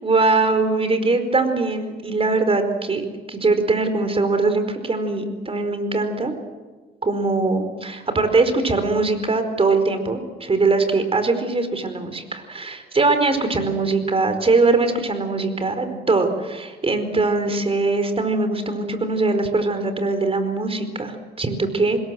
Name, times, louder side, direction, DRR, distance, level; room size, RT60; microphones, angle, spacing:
voice 1, 0.0-6.3 7.0-22.0, right 3 dB, 30° right, 8 dB, 4.8 m, -21 dB
26.0 x 21.5 x 7.9 m, 1.4 s
cardioid pair, 90°, 20 cm